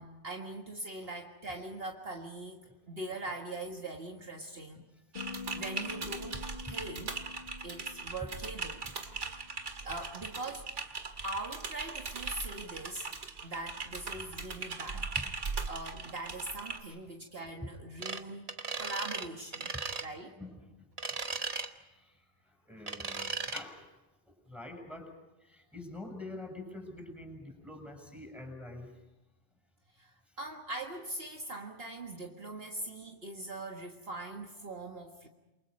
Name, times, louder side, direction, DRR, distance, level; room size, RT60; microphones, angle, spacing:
voice 1, 0.0-2.6 2.9-4.8 5.5-7.2 7.6-9.3 9.8-10.7 11.2-13.1 13.4-15.1 15.7-19.7 20.0-20.4 30.0-35.3, right 2 dB, 55° right, 2 dB, 2.0 m, -42 dB
Typing, 5.1-16.8, right 4 dB, 80° right, 2.2 m, -40 dB
sound 1, 5.2-9.5, left 4 dB, 45° left, 1.6 m, -47 dB
voice 2, 8.8-9.2 13.3-13.5 14.9-15.4 16.9-17.0 17.6-17.8 19.7-19.8 20.3-23.9 24.3-25.1 25.4-29.0, left 2 dB, ahead, 4 dB, 6.9 m, -47 dB
sound 2, 18.0-18.2 18.5-19.3 19.5-20.1 21.0-21.7 22.9-23.6, right 4 dB, 35° right, 1.2 m, -36 dB
28.5 x 24.0 x 5.4 m, 1.0 s
omnidirectional pair, 1.2 m